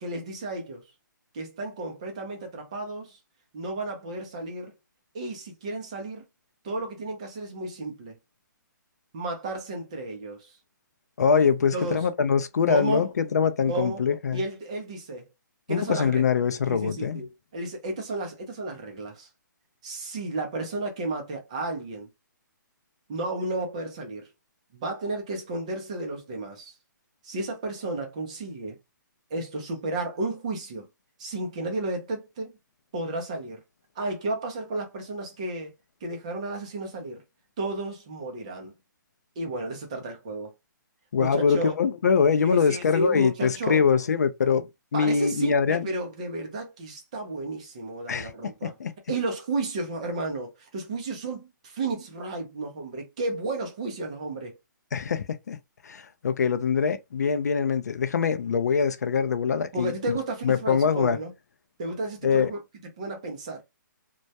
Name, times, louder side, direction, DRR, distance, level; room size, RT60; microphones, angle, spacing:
voice 1, 0.0-0.8 1.3-3.2 3.5-4.7 5.1-6.2 6.6-8.2 9.1-10.5 11.7-12.1 12.7-13.1 13.7-14.0 14.3-15.2 15.7-16.2 16.7-19.3 19.8-22.1 23.1-24.3 24.7-26.7 27.2-28.8 29.3-30.9 31.2-32.5 32.9-33.6 34.0-35.7 36.0-37.2 37.6-38.7 39.4-40.5 41.2-41.8 42.4-43.8 44.9-48.7 49.1-54.6 59.7-61.3 61.8-62.6 63.0-63.6, right 2 dB, 20° right, 0.4 m, -32 dB
voice 2, 11.2-14.4 15.7-17.2 41.1-44.6 44.9-45.9 48.1-48.3 48.6-48.9 54.9-55.6 55.8-60.2 60.4-61.2 62.2-62.5, left 6 dB, 55° left, 0.4 m, -23 dB
2.2 x 2.0 x 2.7 m
hypercardioid pair, 175°, 11 cm